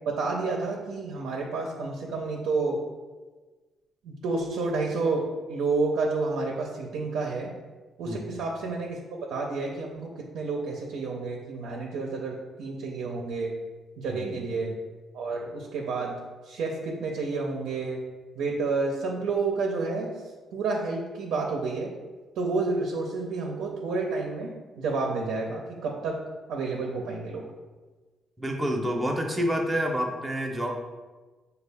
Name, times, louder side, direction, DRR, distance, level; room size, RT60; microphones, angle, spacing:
voice 1, 0.1-2.8 4.0-7.5 8.0-13.5 14.0-14.8 15.1-16.2 16.5-18.0 18.4-20.1 20.5-21.9 22.4-26.2 26.5-27.5, right 3 dB, 80° right, 0 dB, 0.5 m, -30 dB
voice 2, 8.1-8.4 14.1-14.5 28.4-30.8, equal, 10° right, 1 dB, 0.7 m, -28 dB
5.3 x 2.3 x 3.4 m, 1.3 s
cardioid pair, 90°, 0 cm